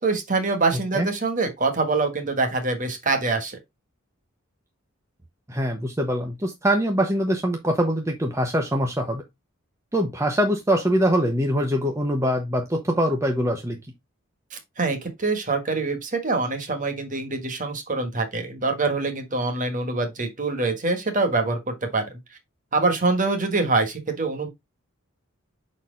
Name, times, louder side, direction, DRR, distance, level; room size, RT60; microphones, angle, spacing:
voice 1, 0.0-3.6 14.5-22.2 22.7-24.5, right 3 dB, 40° right, 1.5 m, -25 dB
voice 2, 5.5-9.2 9.9-13.8, equal, 15° right, 0.8 m, -23 dB
5.9 x 4.3 x 3.8 m
head